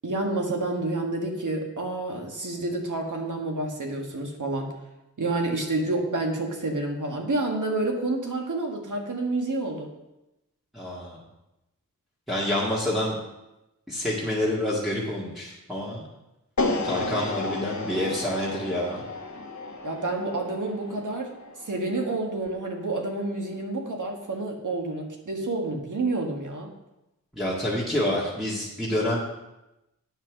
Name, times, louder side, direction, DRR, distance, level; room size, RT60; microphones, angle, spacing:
voice 1, 0.0-4.7 5.2-9.9 19.8-21.3 21.7-26.7, right 2 dB, 70° right, 1 dB, 1.8 m, -29 dB
voice 2, 10.7-11.2 12.3-13.2 13.9-16.1 16.8-19.0 27.3-29.2, left 1 dB, ahead, -8 dB, 2.0 m, -28 dB
sound 1, 16.6-22.7, left 2 dB, 60° left, 1.2 m, -33 dB
8.9 x 5.9 x 6.2 m, 0.95 s
wide cardioid pair, 80°, 32 cm